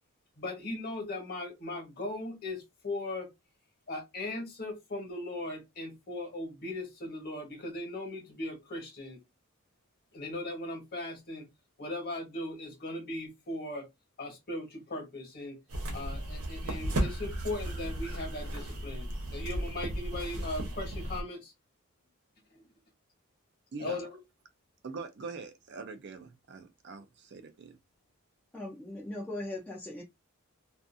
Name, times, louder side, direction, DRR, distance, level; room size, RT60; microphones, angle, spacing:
voice 1, 0.4-3.3 3.9-9.2 10.1-11.5 11.8-13.9 14.2-15.6 15.9-21.5 23.8-24.1, left 2 dB, 45° left, 1.2 m, -38 dB
sound 1, 15.7-21.2, right 1 dB, 90° right, 0.9 m, -35 dB
voice 2, 24.8-27.8, right 4 dB, 50° right, 0.4 m, -43 dB
voice 3, 28.5-30.0, left 1 dB, 10° left, 0.5 m, -39 dB
2.5 x 2.4 x 2.5 m
head